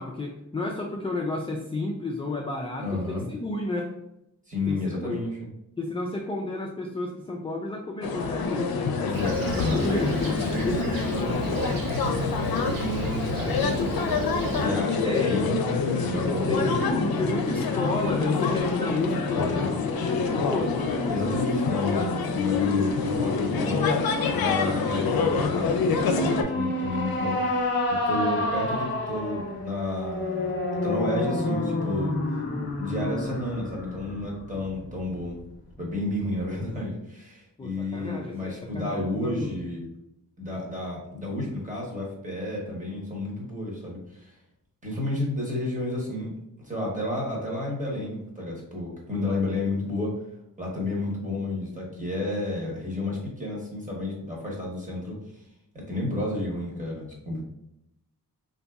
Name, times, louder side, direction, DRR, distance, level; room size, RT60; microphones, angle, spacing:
voice 1, 0.0-3.9 4.7-5.2 5.8-11.2 15.0-15.4 16.5-21.5 37.6-39.6, left 2 dB, 15° left, -1 dB, 0.3 m, -31 dB
voice 2, 2.8-3.3 4.5-5.4 9.0-9.8 10.4-16.9 19.3-19.7 21.1-30.5 30.8-32.1 32.8-35.4 35.8-39.8 40.4-44.4 44.8-46.3 46.6-50.2 50.6-55.4 55.9-57.4, left 2 dB, 20° right, -3 dB, 1.1 m, -31 dB
sound 1, 8.0-26.4, left 5 dB, 80° left, 0.5 m, -26 dB
Fixed-wing aircraft airplane, 9.1-14.7, right 3 dB, 70° right, 0.6 m, -34 dB
sound 2, 26.0-35.4, left 1 dB, 30° left, 0.7 m, -29 dB
3.9 x 2.6 x 2.3 m, 0.84 s
wide cardioid pair, 120°, 36 cm